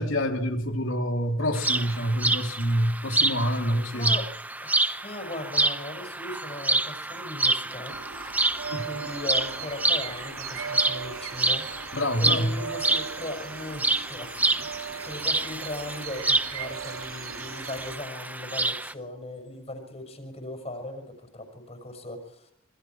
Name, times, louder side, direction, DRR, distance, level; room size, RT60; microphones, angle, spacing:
voice 1, 0.0-4.2 8.7-8.8 11.9-12.5, equal, 65° left, 3.2 m, -26 dB
sound 1, 1.5-18.9, right 2 dB, 10° right, 0.7 m, -28 dB
voice 2, 4.6-7.9 8.2-8.3 8.8-11.6 12.2-22.5, left 1 dB, 30° left, 5.8 m, -38 dB
sound 2, 7.9-18.0, right 6 dB, 80° right, 2.8 m, -39 dB
27.0 x 22.0 x 4.7 m
head